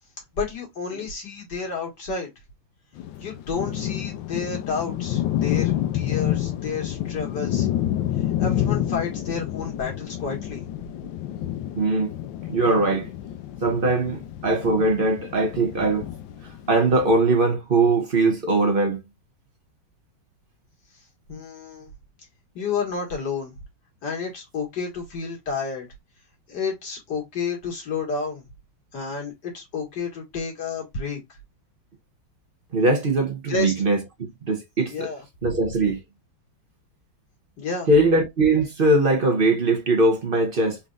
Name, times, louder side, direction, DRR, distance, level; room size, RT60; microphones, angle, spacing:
voice 1, 0.3-2.3 3.2-7.7 8.4-10.6 21.3-21.9 22.5-23.6 24.0-25.9 26.5-28.4 28.9-31.2 33.5-33.7 34.9-35.2 37.6-37.9, left 5 dB, 55° left, 2.4 m, -30 dB
sound 1, 3.0-17.1, left 12 dB, 80° left, 1.3 m, -29 dB
voice 2, 11.8-12.1 12.5-13.1 13.6-16.1 16.4-19.0 32.7-35.1 35.4-36.0 37.9-40.8, right 2 dB, 50° right, 0.6 m, -21 dB
4.2 x 3.9 x 2.5 m
omnidirectional pair, 2.2 m